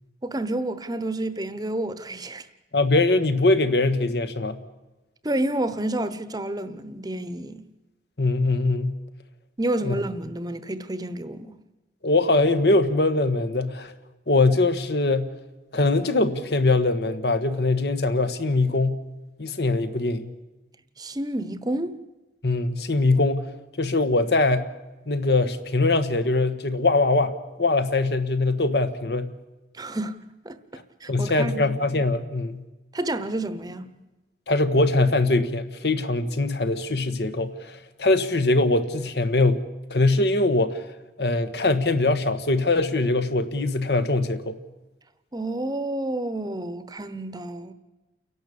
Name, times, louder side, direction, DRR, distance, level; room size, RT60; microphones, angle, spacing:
voice 1, 0.2-2.5 5.2-7.7 9.6-11.6 21.0-22.0 29.7-30.2 30.4-31.7 32.9-33.9 45.3-47.7, right 1 dB, 20° right, 0.9 m, -29 dB
voice 2, 2.7-4.6 8.2-9.0 9.8-9.9 12.0-13.9 14.3-15.3 15.7-19.0 19.4-20.3 22.4-23.5 23.8-24.7 25.1-29.3 31.1-32.6 34.5-39.6 39.9-40.8 41.2-44.6, left 2 dB, 65° left, 1.4 m, -22 dB
29.5 x 11.5 x 8.6 m
head